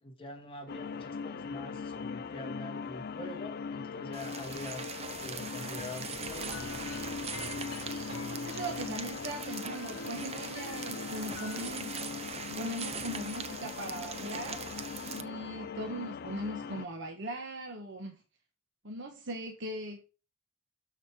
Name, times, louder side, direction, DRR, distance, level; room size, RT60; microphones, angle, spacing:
voice 1, 0.0-4.9 5.2-6.8, left 1 dB, 25° left, 2.3 m, -44 dB
sound 1, 0.7-16.9, left 5 dB, 50° left, 0.4 m, -40 dB
sound 2, 4.1-15.2, right 6 dB, 30° right, 0.8 m, -42 dB
sound 3, 6.2-11.7, left 3 dB, 80° left, 1.0 m, -45 dB
voice 2, 8.4-12.1 12.4-14.6 15.2-18.2 18.8-20.1, right 1 dB, 60° right, 1.4 m, -40 dB
13.0 x 5.5 x 4.8 m
head